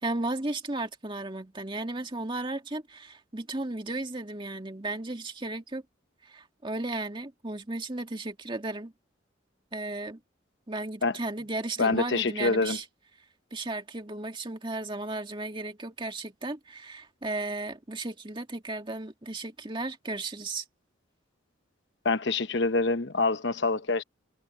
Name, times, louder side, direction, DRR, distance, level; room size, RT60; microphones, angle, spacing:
voice 1, 0.0-5.8 6.2-8.9 9.7-10.2 10.7-12.8 13.5-20.6, right 2 dB, 25° right, 2.1 m, -35 dB
voice 2, 11.8-12.8 22.0-24.0, left 3 dB, 60° left, 1.0 m, -26 dB
head